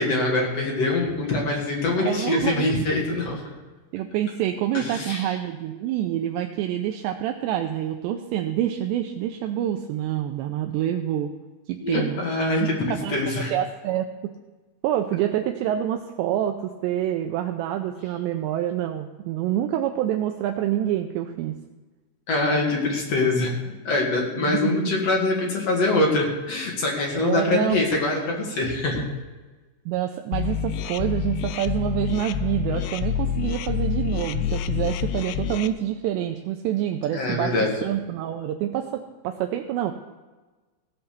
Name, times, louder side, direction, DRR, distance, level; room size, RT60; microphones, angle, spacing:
voice 1, 0.0-3.4 4.7-5.3 11.8-13.5 22.3-29.0 37.1-37.7, left 2 dB, 45° left, -1 dB, 2.4 m, -24 dB
voice 2, 2.0-2.8 3.9-11.3 11.7-12.2 12.6-13.2 13.5-14.1 14.8-21.6 24.4-25.0 27.1-27.8 29.9-39.9, right 11 dB, 80° right, 5 dB, 2.6 m, -27 dB
sound 1, 30.3-35.7, left 9 dB, 85° left, 3.0 m, -27 dB
16.5 x 5.8 x 6.7 m, 1.2 s
omnidirectional pair, 5.4 m